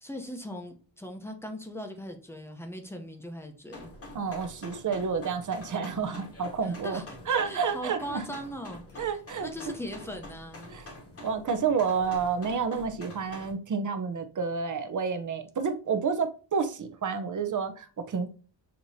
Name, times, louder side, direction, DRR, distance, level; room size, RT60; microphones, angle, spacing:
voice 1, 0.0-3.9 6.6-9.0 9.4-10.7, equal, 5° left, 0.6 m, -40 dB
sound 1, 3.7-13.5, left 1 dB, 30° left, 1.0 m, -46 dB
voice 2, 4.1-8.3 9.0-9.7 10.7-10.9 11.2-18.3, right 5 dB, 45° right, 0.6 m, -30 dB
6.5 x 2.9 x 2.6 m
wide cardioid pair, 155°, 45 cm